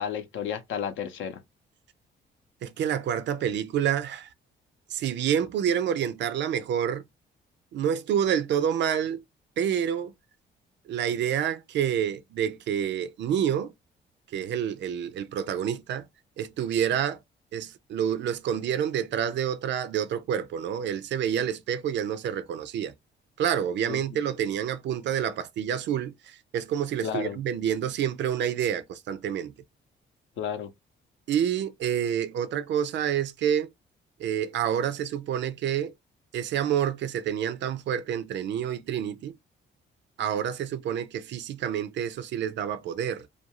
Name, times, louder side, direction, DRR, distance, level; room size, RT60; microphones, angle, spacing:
voice 1, 0.0-1.4 23.9-24.0 27.0-27.4 30.4-30.7, left 8 dB, 75° left, 0.6 m, -32 dB
voice 2, 2.6-4.3 4.9-7.0 7.7-9.2 9.6-10.1 10.9-13.7 14.3-16.1 16.4-17.2 17.5-22.9 23.4-29.5 31.3-33.7 34.2-35.9 36.3-39.3 40.2-43.3, right 9 dB, 65° right, 0.4 m, -28 dB
2.5 x 2.3 x 2.9 m
cardioid pair, 90°, 20 cm